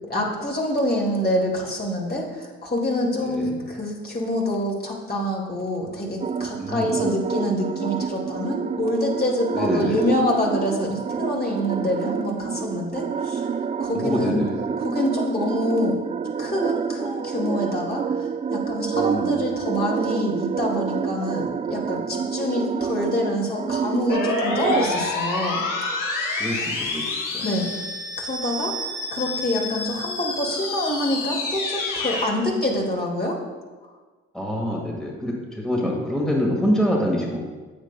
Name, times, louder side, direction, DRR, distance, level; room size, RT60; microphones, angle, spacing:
voice 1, 0.1-13.5 13.8-14.4 14.8-16.0 16.4-18.0 18.5-25.7 27.4-27.7 28.2-33.4, left 1 dB, 30° left, -1 dB, 2.2 m, -26 dB
voice 2, 3.2-3.5 6.6-6.9 9.5-10.0 13.9-14.6 18.9-19.3 24.4-24.9 26.4-27.1 27.3-27.4 34.3-37.4, equal, ahead, -2 dB, 1.8 m, -26 dB
sound 1, 6.2-24.9, right 6 dB, 20° right, 0.3 m, -28 dB
sound 2, 24.1-32.3, left 3 dB, 70° left, 1.3 m, -28 dB
9.5 x 8.1 x 2.2 m, 1.3 s
hypercardioid pair, 45°, 33 cm